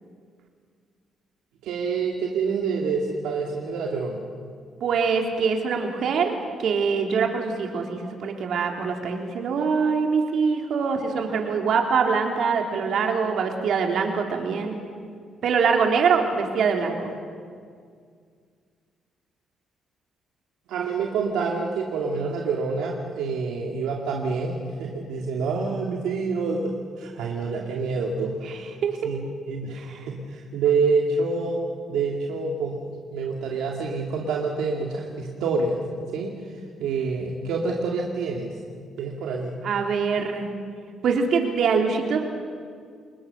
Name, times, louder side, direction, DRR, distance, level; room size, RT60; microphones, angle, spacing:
voice 1, 1.6-4.2 20.7-28.4 29.0-31.6 31.9-32.8 33.1-35.8 36.1-36.3 36.8-38.5 39.0-39.5, right 4 dB, 90° right, 0 dB, 2.3 m, -27 dB
voice 2, 4.8-6.3 6.6-14.8 15.4-17.1 28.8-29.0 29.8-30.0 39.6-40.5 41.0-42.2, right 5 dB, 70° right, 3 dB, 3.6 m, -24 dB
29.5 x 21.0 x 6.8 m, 2.1 s
cardioid pair, 90°, 0 cm